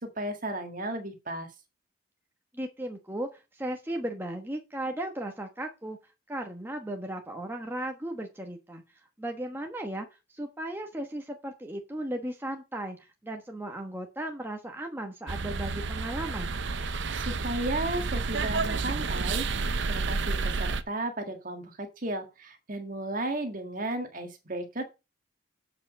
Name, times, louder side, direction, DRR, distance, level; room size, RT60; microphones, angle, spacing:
voice 1, 0.0-1.5 17.1-24.8, right 1 dB, 40° right, 6 dB, 1.6 m, -34 dB
voice 2, 2.5-6.0 6.3-8.8 9.2-16.5, right 1 dB, 10° right, 2 dB, 1.2 m, -36 dB
sound 1, 15.3-20.8, right 4 dB, 60° right, 0.7 m, -30 dB
8.4 x 5.0 x 6.4 m, 0.27 s
head